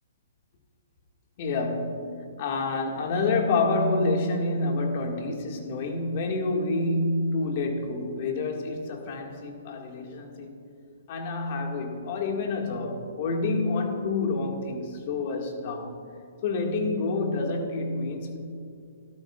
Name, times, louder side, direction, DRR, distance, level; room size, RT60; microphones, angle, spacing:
voice 1, 1.4-2.0 2.4-10.5 11.1-16.0 16.4-18.4, left 3 dB, 45° left, 2 dB, 2.0 m, -28 dB
17.5 x 12.5 x 2.5 m, 2.4 s
hypercardioid pair, 135°, 0 cm